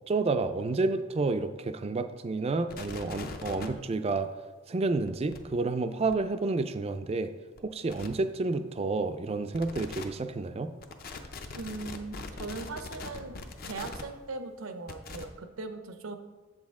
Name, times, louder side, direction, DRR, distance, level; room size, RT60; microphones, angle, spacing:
voice 1, 0.1-4.3 4.7-7.3 7.6-10.7, right 3 dB, 30° right, 10 dB, 0.4 m, -30 dB
sound 1, 2.7-3.7 5.1-5.4 6.1-6.2 7.6-7.7 7.9-8.1 9.5-10.0 10.8-14.0 14.9-15.2, left 3 dB, 45° left, 0.6 m, -41 dB
voice 2, 11.5-13.4 13.6-16.2, right 3 dB, 75° right, 7 dB, 0.6 m, -39 dB
7.7 x 6.4 x 3.6 m, 1.3 s
head